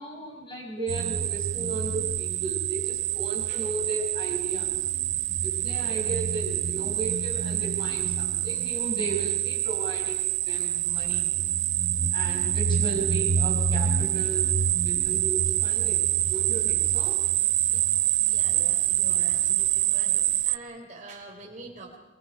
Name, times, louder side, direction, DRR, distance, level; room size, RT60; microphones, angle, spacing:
voice 1, 0.0-4.9 5.4-11.3 12.1-14.6 14.8-17.2, right 2 dB, 25° left, 0 dB, 6.1 m, -35 dB
sound 1, 0.9-20.6, right 11 dB, 85° right, 0.7 m, -26 dB
voice 2, 18.2-22.0, right 2 dB, 40° right, -4 dB, 3.5 m, -45 dB
27.5 x 22.5 x 5.5 m, 1.1 s
head